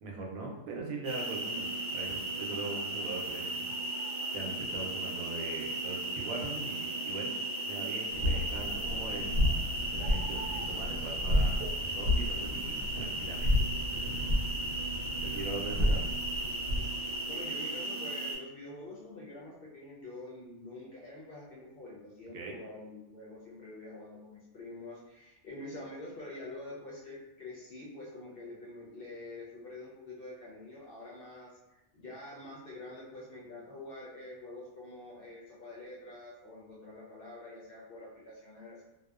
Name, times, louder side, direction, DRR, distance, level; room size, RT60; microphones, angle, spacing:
voice 1, 0.0-3.5 4.3-7.4 7.7-9.4 9.9-13.5 13.9-14.7 15.2-16.1 22.3-22.5, right 3 dB, 90° right, 0 dB, 1.0 m, -41 dB
sound 1, 1.0-18.3, right 2 dB, 35° right, 0.7 m, -36 dB
sound 2, 8.1-17.0, left 1 dB, 65° right, 0.9 m, -32 dB
voice 2, 17.2-38.8, left 2 dB, 60° left, -5 dB, 0.6 m, -46 dB
2.6 x 2.1 x 2.3 m, 0.94 s
omnidirectional pair, 1.4 m